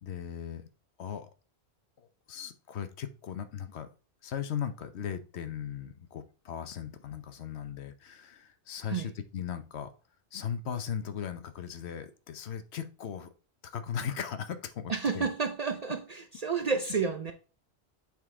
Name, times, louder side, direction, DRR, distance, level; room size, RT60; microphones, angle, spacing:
voice 1, 0.0-0.6 1.0-1.3 2.0-3.9 4.2-9.9 10.3-13.3 13.6-15.3, left 8 dB, 80° left, 1.0 m, -38 dB
voice 2, 14.9-17.3, right 5 dB, 50° right, 0.5 m, -30 dB
7.4 x 3.8 x 3.6 m
omnidirectional pair, 1.1 m